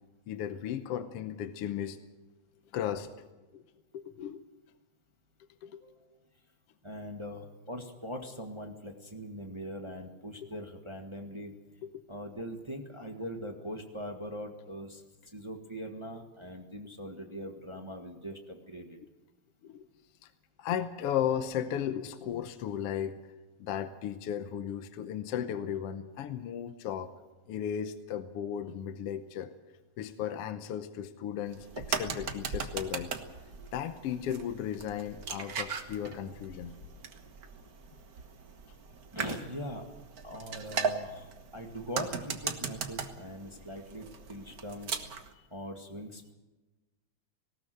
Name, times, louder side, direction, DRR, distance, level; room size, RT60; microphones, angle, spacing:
voice 1, 0.3-2.0 2.7-3.1 3.5-3.6 3.9-4.4 5.6-5.9 10.4-10.5 11.8-12.0 19.6-19.9 20.2-20.3 20.6-23.3 23.6-27.1 27.5-29.5 30.0-33.1 33.7-36.7 45.4-45.5, left 9 dB, 70° left, 9 dB, 1.6 m, -35 dB
voice 2, 5.8-6.2 6.8-11.5 12.1-19.0 39.1-39.9 40.2-45.0 45.5-46.3, equal, 20° right, 3 dB, 0.8 m, -41 dB
sound 1, 31.5-45.3, right 5 dB, 50° right, 1.2 m, -38 dB
19.0 x 18.0 x 7.9 m, 1.1 s
omnidirectional pair, 3.4 m